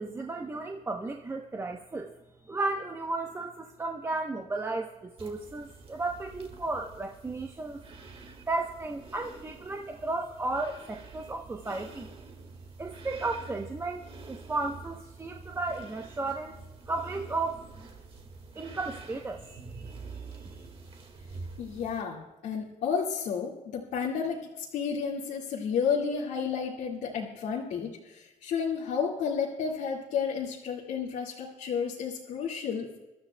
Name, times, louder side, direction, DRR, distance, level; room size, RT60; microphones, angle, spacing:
voice 1, 0.0-2.1 2.5-7.8 8.5-12.1 12.8-16.6 16.9-17.6 18.5-19.9 20.4-20.6, right 3 dB, 20° right, 3 dB, 0.8 m, -34 dB
sound 1, 5.2-22.0, right 4 dB, 45° right, 1.8 m, -47 dB
voice 2, 21.6-33.0, left 6 dB, 90° left, -4 dB, 1.9 m, -32 dB
28.0 x 12.5 x 2.2 m, 1.0 s
cardioid pair, 110°, 14 cm